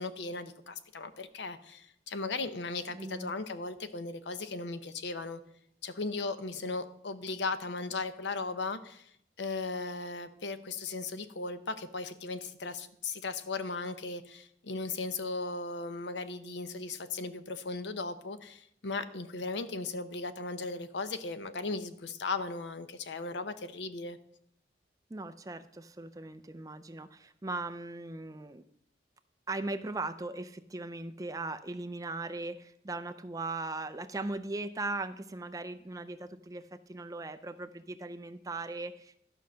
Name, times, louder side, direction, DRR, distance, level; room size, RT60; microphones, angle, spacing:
voice 1, 0.0-5.4 5.8-9.1 9.4-24.2, left 3 dB, 80° left, 12 dB, 0.7 m, -37 dB
voice 2, 2.9-3.3 25.1-28.7 29.5-39.2, right 2 dB, 20° right, 11 dB, 0.4 m, -39 dB
11.5 x 5.6 x 6.3 m, 0.71 s
head